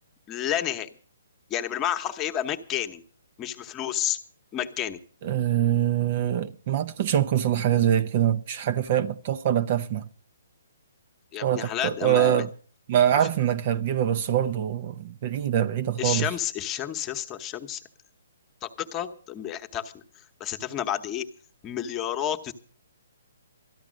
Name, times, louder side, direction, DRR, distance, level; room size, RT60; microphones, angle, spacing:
voice 1, 0.3-0.9 1.5-3.0 3.4-4.2 4.5-5.0 11.3-12.4 13.2-13.3 16.0-17.8 18.6-21.3 21.6-22.5, left 10 dB, 20° left, 1.0 m, -30 dB
voice 2, 5.2-10.1 11.4-12.5 12.9-16.3, right 10 dB, 40° right, 0.6 m, -24 dB
13.5 x 11.0 x 6.3 m
hypercardioid pair, 150°, 0 cm